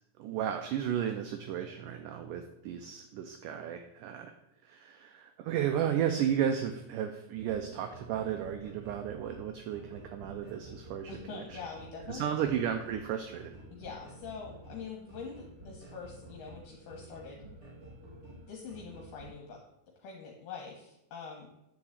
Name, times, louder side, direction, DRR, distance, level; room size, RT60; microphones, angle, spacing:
voice 1, 0.2-4.3 4.6-11.6 12.1-13.5, right 9 dB, 80° right, 6 dB, 1.9 m, -34 dB
sound 1, 7.3-19.3, right 1 dB, 40° right, 2.7 m, -51 dB
voice 2, 11.1-12.3 13.7-17.5 18.5-19.6 20.0-21.5, left 5 dB, 65° left, 0 dB, 2.5 m, -44 dB
9.7 x 3.9 x 7.2 m, 0.85 s
omnidirectional pair, 4.2 m